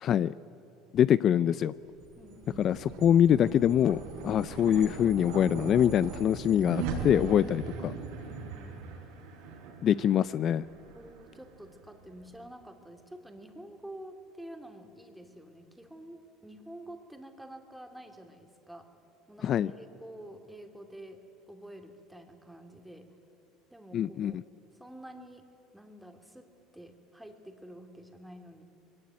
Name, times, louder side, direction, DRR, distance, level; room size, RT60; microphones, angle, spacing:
voice 1, 0.0-0.3 0.9-1.7 2.6-7.9 9.8-10.6 19.4-19.7 23.9-24.3, left 10 dB, 45° left, 17 dB, 0.4 m, -24 dB
sound 1, 1.8-12.3, right 5 dB, 75° right, 5.8 m, -40 dB
voice 2, 2.2-2.7 8.2-8.8 10.9-18.9 19.3-23.1 23.7-24.4 24.7-25.5 25.7-28.6, right 1 dB, 5° right, 5 dB, 2.7 m, -48 dB
21.5 x 18.0 x 9.6 m, 2.9 s
supercardioid pair, 100°, 0 cm